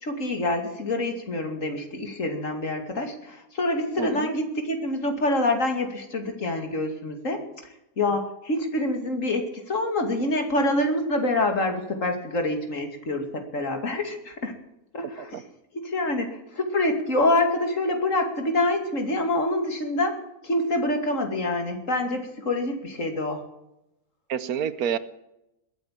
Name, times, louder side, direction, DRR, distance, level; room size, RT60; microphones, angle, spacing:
voice 1, 0.0-7.4 8.0-14.5 14.9-15.4 15.8-20.1 20.4-23.4, left 1 dB, 60° left, 5 dB, 2.8 m, -26 dB
voice 2, 4.0-4.3 15.3-15.4 24.3-25.0, right 8 dB, 80° right, 15 dB, 1.4 m, -28 dB
21.5 x 8.9 x 7.4 m, 0.89 s
omnidirectional pair, 1.5 m